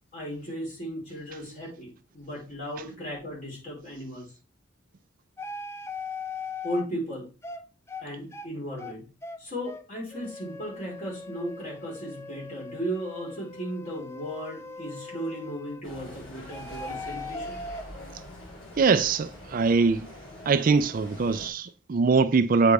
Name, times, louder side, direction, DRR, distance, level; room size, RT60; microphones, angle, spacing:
voice 1, 0.1-4.3 6.6-7.3 8.0-9.0 9.4-17.5, equal, 40° left, 4.0 m, -36 dB
sound 1, 5.4-6.8 7.4-7.6 7.9-8.1 8.3-8.5 8.8-8.9 9.2-9.4 9.7-9.8 10.1-15.8 16.5-17.8, left 3 dB, 15° left, 0.5 m, -39 dB
sound 2, 15.8-21.5, left 1 dB, 70° left, 3.2 m, -44 dB
voice 2, 18.8-20.1 20.5-22.7, right 4 dB, 45° right, 0.4 m, -22 dB
8.3 x 5.1 x 3.4 m
head